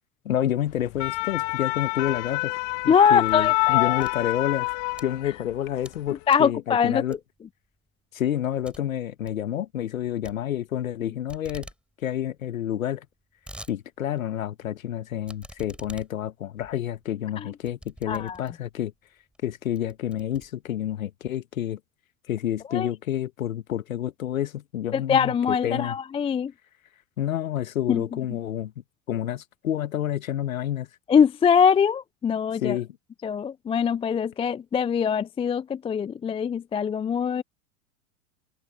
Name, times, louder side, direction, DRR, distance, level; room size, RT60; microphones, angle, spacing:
voice 1, 0.3-2.5 2.8-4.8 5.0-7.2 8.1-11.7 12.0-13.1 13.7-18.9 19.4-21.8 22.3-26.0 27.2-28.7 29.1-30.9 32.6-32.9, left 11 dB, 70° left, 1.6 m, -29 dB
sound 1, 0.7-5.5 5.9-6.1, left 31 dB, 45° left, 1.5 m, -27 dB
sound 2, 2.6-3.6 3.9-5.1 5.6-6.0 6.3-6.6 7.1-7.5 7.9-8.0 8.3-8.4 8.6-8.8 9.1-9.4 10.2-11.0 11.3-11.8 12.1-12.2 12.4-12.5 13.0-13.8 14.2-14.3 15.2-18.8 19.3-19.4 19.8-21.0, right 1 dB, ahead, 6.6 m, -46 dB
voice 2, 2.9-4.1 6.3-7.0 17.4-17.5 18.1-18.4 22.7-22.9 24.9-26.5 27.9-28.0 31.1-32.8 33.2-37.4, left 7 dB, 15° left, 0.5 m, -23 dB
figure-of-eight pair, 90°, 42 cm